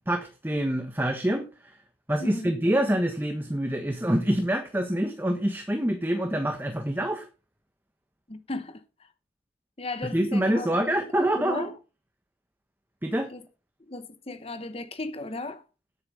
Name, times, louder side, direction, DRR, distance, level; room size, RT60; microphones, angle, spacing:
voice 1, 0.1-1.8 2.1-7.3 10.0-11.7 13.0-13.3, right 1 dB, 10° right, 1.3 m, -26 dB
voice 2, 2.2-2.6 8.3-8.8 9.8-10.9 11.4-11.7 13.3-13.4 13.9-15.6, left 2 dB, 35° left, 1.0 m, -36 dB
10.5 x 8.9 x 5.6 m
head